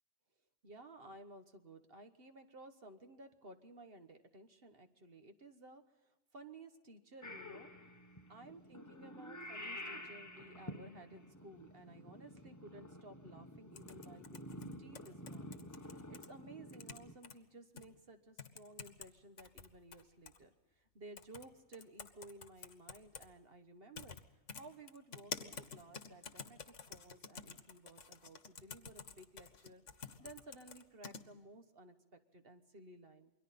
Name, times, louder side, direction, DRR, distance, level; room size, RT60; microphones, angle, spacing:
voice 1, 0.6-7.7 8.3-24.2 24.5-33.3, right 2 dB, 45° right, 7 dB, 1.4 m, -56 dB
Purr / Meow, 7.2-17.2, left 1 dB, 15° left, 0.9 m, -50 dB
sound 1, 13.8-16.3 16.7-17.4 17.8-17.9 18.4-19.1 19.4-20.4 21.2-21.5 21.7-23.3 24.0-24.2 24.5-31.2, left 6 dB, 60° left, 1.5 m, -49 dB
28.5 x 22.5 x 4.2 m, 1.1 s
omnidirectional pair, 1.5 m